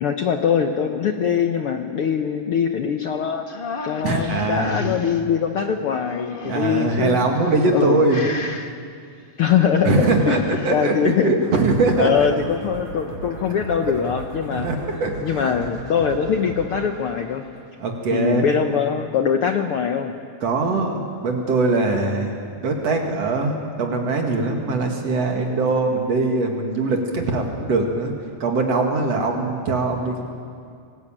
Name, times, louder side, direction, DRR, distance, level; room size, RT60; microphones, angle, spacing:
voice 1, 0.0-3.4 3.8-7.2 7.7-8.0 9.4-10.4 10.7-11.5 12.0-17.4 18.1-20.1, left 7 dB, 60° left, 5 dB, 1.5 m, -22 dB
sound 1, 3.5-5.2 6.0-6.9 7.5-8.7 10.0-10.8, left 3 dB, 45° left, 0.7 m, -34 dB
voice 2, 4.0-4.8 6.4-8.2 9.8-12.3 14.5-15.5 17.8-18.6 20.4-22.3 22.6-28.1 28.4-30.3, right 3 dB, 60° right, 2 dB, 3.1 m, -22 dB
sound 2, 11.4-18.2, right 3 dB, 80° right, 5.5 m, -37 dB
26.0 x 19.5 x 8.9 m, 2.3 s
omnidirectional pair, 3.4 m